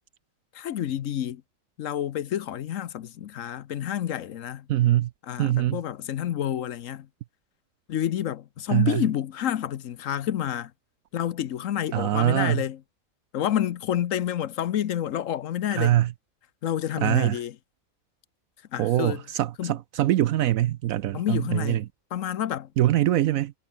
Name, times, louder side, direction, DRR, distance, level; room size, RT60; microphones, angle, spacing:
voice 1, 0.5-1.4 1.8-4.7 5.2-7.1 7.9-10.7 11.1-12.8 13.3-16.0 16.6-17.5 18.7-19.2 19.6-19.8 21.1-21.8 22.1-22.7, left 10 dB, 70° left, 1.1 m, -29 dB
voice 2, 4.7-5.1 5.4-5.8 8.7-9.0 11.9-12.6 15.7-16.1 17.0-17.3 18.8-21.8 22.8-23.5, right 13 dB, 75° right, 1.0 m, -23 dB
omnidirectional pair, 1.5 m